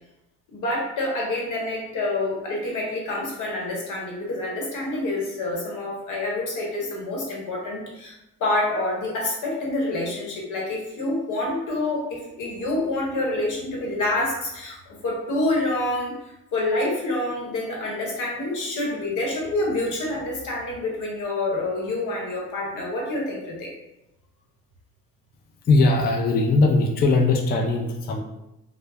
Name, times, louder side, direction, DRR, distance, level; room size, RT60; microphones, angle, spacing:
voice 1, 0.5-8.1 8.4-23.7, left 2 dB, 80° left, -2 dB, 0.9 m, -27 dB
voice 2, 25.7-28.2, left 3 dB, 35° left, 1 dB, 0.4 m, -20 dB
2.1 x 2.0 x 3.3 m, 0.90 s
cardioid pair, 90°, 30 cm